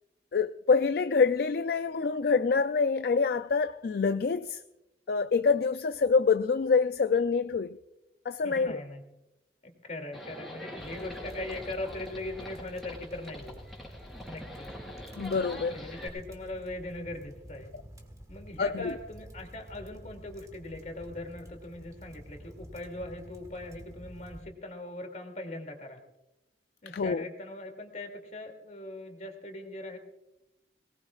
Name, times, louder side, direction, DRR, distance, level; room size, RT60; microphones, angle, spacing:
voice 1, 0.3-4.6 5.1-7.8 8.3-8.8 15.2-15.8 18.6-18.9 26.9-27.2, left 5 dB, 60° left, 0.4 m, -26 dB
voice 2, 8.4-9.0 9.6-13.6 14.2-14.7 15.7-17.7 18.3-26.0 26.8-30.0, left 1 dB, 40° left, 2.6 m, -40 dB
Livestock farm animals working animals, 10.1-16.1, left 1 dB, ahead, 3.8 m, -44 dB
sound 1, 10.8-24.4, equal, 20° right, 1.9 m, -49 dB
22.0 x 19.0 x 2.4 m
head